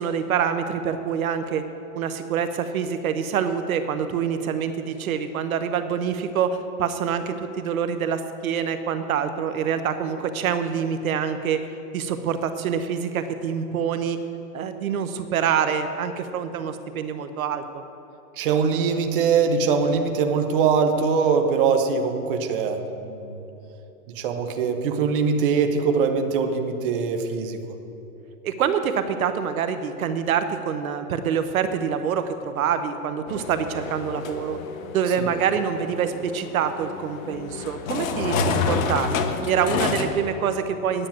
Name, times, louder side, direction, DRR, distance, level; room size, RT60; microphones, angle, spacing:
voice 1, 0.0-1.6 1.9-11.7 11.9-14.2 14.5-17.8 28.4-34.6 34.9-39.2 39.5-41.1, right 7 dB, 65° right, 9 dB, 0.9 m, -26 dB
voice 2, 18.4-23.4 24.1-27.6 35.2-35.3 38.3-38.5, right 5 dB, 35° right, 5 dB, 0.9 m, -22 dB
sound 1, 33.3-40.1, left 5 dB, 60° left, 1.2 m, -29 dB
10.0 x 7.6 x 8.9 m, 3.0 s
supercardioid pair, 170°, 45 cm